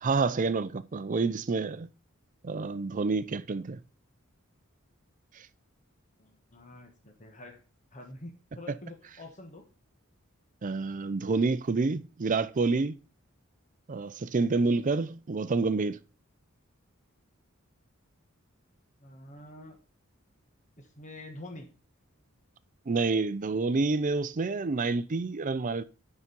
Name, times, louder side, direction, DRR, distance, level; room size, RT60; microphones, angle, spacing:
voice 1, 0.0-1.9 2.4-3.8 10.6-13.0 13.9-16.0 22.9-25.8, right 3 dB, 40° right, 0.5 m, -28 dB
voice 2, 6.2-7.6 7.9-9.7 19.0-19.8 20.8-21.7, left 2 dB, 35° left, 1.3 m, -46 dB
6.9 x 5.9 x 5.3 m
head